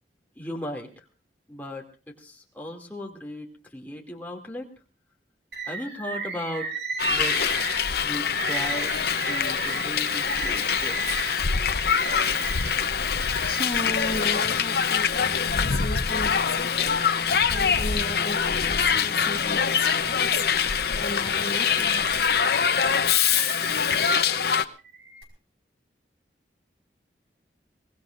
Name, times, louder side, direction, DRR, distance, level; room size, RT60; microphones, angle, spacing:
voice 1, 0.4-1.0 1.5-4.7 5.7-6.7 7.1-7.4 8.0-8.9 9.2-11.1, equal, 10° left, 0 dB, 2.5 m, -36 dB
Bird, 5.5-14.4 15.0-16.0 16.5-17.5 17.9-19.3 19.8-24.1 24.8-25.2, right 4 dB, 75° right, 5.0 m, -36 dB
Hiss, 7.0-24.6, left 7 dB, 60° left, 0.8 m, -24 dB
voice 2, 13.4-22.2, left 2 dB, 35° left, 2 dB, 1.9 m, -35 dB
23.5 x 19.0 x 2.6 m, 0.34 s
head